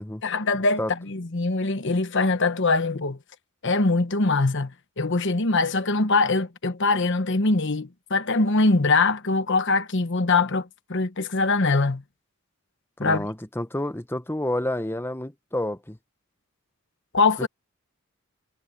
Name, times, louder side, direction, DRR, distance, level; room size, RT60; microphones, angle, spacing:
voice 1, 0.2-3.2 3.6-12.0 13.0-13.3 17.1-17.5, left 3 dB, 55° left, 1.2 m, -23 dB
voice 2, 13.0-16.0 17.4-17.5, left 1 dB, 10° left, 1.0 m, -29 dB
head